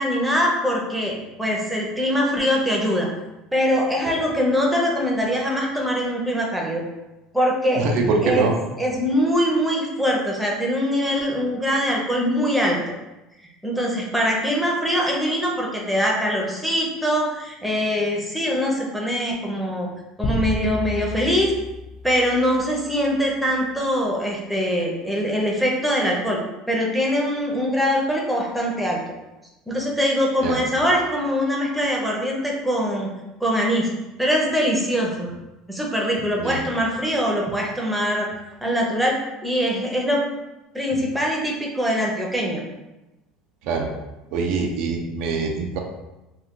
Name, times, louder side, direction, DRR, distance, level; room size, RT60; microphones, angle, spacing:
voice 1, 0.0-3.1 3.5-6.8 7.3-7.9 8.2-8.5 8.8-12.8 13.6-19.9 20.2-21.5 22.0-26.4 26.7-29.0 29.7-33.1 33.4-33.9 34.2-35.3 35.7-38.3 38.6-40.2 40.7-42.6, equal, ahead, -2 dB, 0.7 m, -23 dB
voice 2, 7.8-8.5 30.4-30.6 36.4-36.6 43.7-43.9 44.3-45.8, right 4 dB, 70° right, 2 dB, 0.5 m, -23 dB
sound 1, 20.2-22.8, left 2 dB, 45° left, 0.4 m, -30 dB
2.4 x 2.3 x 3.7 m, 0.99 s
supercardioid pair, 105°, 0 cm